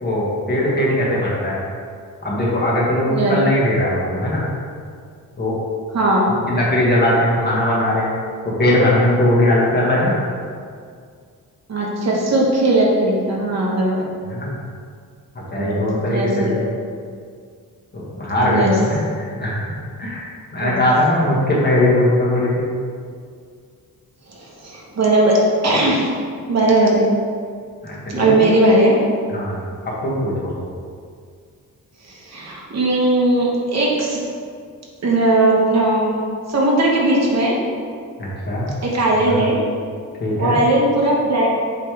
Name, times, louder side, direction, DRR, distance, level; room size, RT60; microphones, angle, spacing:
voice 1, 0.0-1.6 2.2-4.4 5.4-5.6 6.5-8.1 8.4-10.2 14.3-14.5 15.3-16.7 17.9-19.6 20.0-22.7 27.8-28.5 29.3-29.5 29.8-30.5 38.2-38.7 39.3-39.4 40.2-40.6, left 1 dB, 30° left, -6 dB, 1.3 m, -19 dB
voice 2, 5.9-6.3 8.6-8.7 11.7-14.0 15.6-15.8 16.1-16.5 18.4-18.7 20.6-20.7 24.3-26.1 26.5-27.0 28.1-29.0 32.1-34.2 35.0-36.1 36.5-37.6 38.8-39.6 40.4-41.6, right 2 dB, 50° right, -3 dB, 1.2 m, -18 dB
7.5 x 3.2 x 4.7 m, 2.1 s
wide cardioid pair, 180°, 35 cm